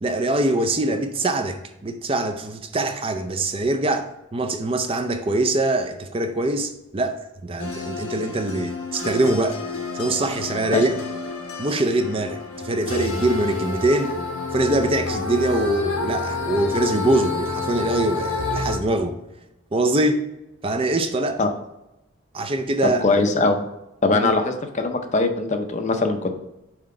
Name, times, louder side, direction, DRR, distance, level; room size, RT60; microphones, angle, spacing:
voice 1, 0.0-9.6 9.9-10.9 11.6-14.1 14.5-19.2 19.7-20.2 20.6-21.4 22.3-23.0 24.2-24.3, right 2 dB, 25° right, 0.4 m, -23 dB
sound 1, 7.6-18.8, left 4 dB, 90° left, 1.4 m, -29 dB
voice 2, 22.8-23.6 24.0-26.4, left 3 dB, 35° left, 0.6 m, -21 dB
5.7 x 4.5 x 3.7 m
head